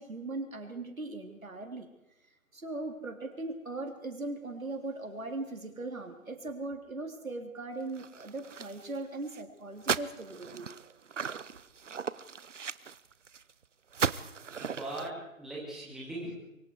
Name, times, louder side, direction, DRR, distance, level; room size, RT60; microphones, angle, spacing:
voice 1, 0.0-1.9 2.5-10.7, right 2 dB, 80° right, 4 dB, 3.7 m, -39 dB
sound 1, 8.0-9.0 9.3-9.4 9.8-13.5 13.9-15.1, right 6 dB, 60° right, 0.8 m, -36 dB
voice 2, 14.6-16.3, right 1 dB, ahead, -6 dB, 2.9 m, -40 dB
24.0 x 23.5 x 4.8 m, 0.92 s
figure-of-eight pair, 155°, 40 cm